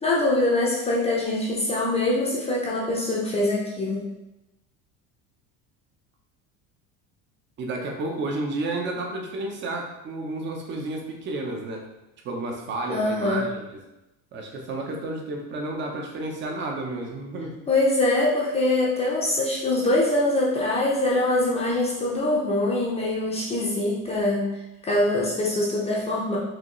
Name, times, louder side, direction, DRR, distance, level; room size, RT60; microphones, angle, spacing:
voice 1, 0.0-4.0 12.9-13.4 17.7-24.5 24.8-26.4, left 2 dB, 20° left, -4 dB, 0.6 m, -23 dB
voice 2, 7.6-11.8 12.2-13.7 14.3-17.6, right 2 dB, 35° right, 2 dB, 0.7 m, -31 dB
4.9 x 2.8 x 3.1 m, 0.95 s
cardioid pair, 150°, 34 cm